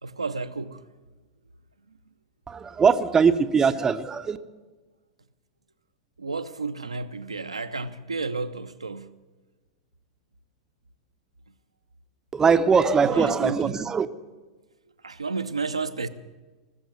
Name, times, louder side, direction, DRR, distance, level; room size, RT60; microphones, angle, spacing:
voice 1, 0.0-0.8 6.2-9.1 13.0-13.7 15.0-16.1, right 4 dB, 85° right, 0.7 m, -32 dB
voice 2, 2.5-4.4 12.3-14.1, right 5 dB, 20° right, 0.7 m, -21 dB
20.0 x 7.0 x 9.4 m
figure-of-eight pair, 90°, 3 cm